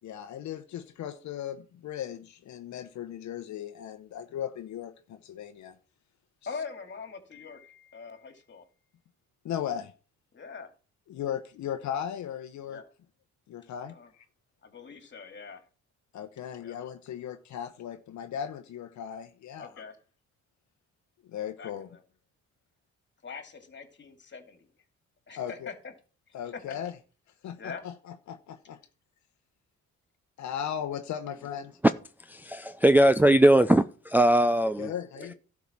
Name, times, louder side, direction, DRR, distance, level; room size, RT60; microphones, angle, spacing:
voice 1, 0.0-5.8 9.4-9.9 11.1-12.8 13.5-14.2 16.1-19.8 21.3-21.9 25.4-25.7 26.3-26.9 27.4-28.8 30.4-31.8 34.8-35.3, left 9 dB, 70° left, 0.9 m, -37 dB
voice 2, 6.5-8.6 10.3-10.7 12.7-12.9 13.9-14.1 14.6-15.6 16.6-16.8 19.6-19.9 21.6-22.0 23.2-24.7 25.3-25.9 26.5-26.8 27.6-27.8 35.2-35.3, left 5 dB, 40° left, 2.5 m, -43 dB
voice 3, 32.3-34.9, right 1 dB, 5° right, 0.5 m, -20 dB
12.0 x 5.0 x 7.3 m
cardioid pair, 90°, 30 cm